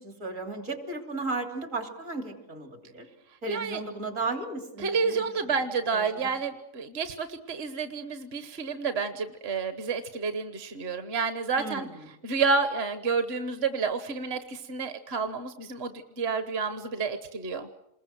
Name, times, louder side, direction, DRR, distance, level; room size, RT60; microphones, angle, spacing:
voice 1, 0.0-3.1 3.4-5.2 5.9-6.1 11.6-11.9, right 3 dB, 70° right, 5 dB, 3.6 m, -34 dB
voice 2, 3.5-3.8 4.8-17.7, right 5 dB, 50° right, 9 dB, 1.4 m, -30 dB
28.0 x 21.5 x 7.7 m, 0.88 s
omnidirectional pair, 1.4 m